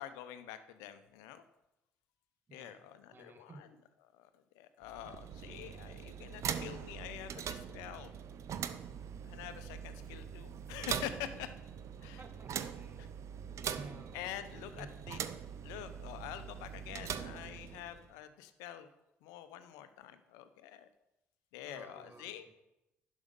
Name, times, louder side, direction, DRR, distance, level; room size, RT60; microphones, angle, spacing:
voice 1, 0.0-1.4 2.5-3.8 4.1-8.1 9.2-11.5 12.0-12.2 13.0-13.1 14.1-15.2 15.6-18.9 19.2-20.9 21.5-22.5, left 11 dB, 75° left, 11 dB, 0.8 m, -46 dB
voice 2, 3.1-3.6 12.2-13.1 13.6-14.2 14.5-14.9 21.6-22.3, right 2 dB, 35° right, 7 dB, 1.5 m, -53 dB
sound 1, 4.8-18.1, right 8 dB, 55° right, 0.6 m, -42 dB
11.0 x 6.3 x 5.3 m, 0.92 s
hypercardioid pair, 55°, 6 cm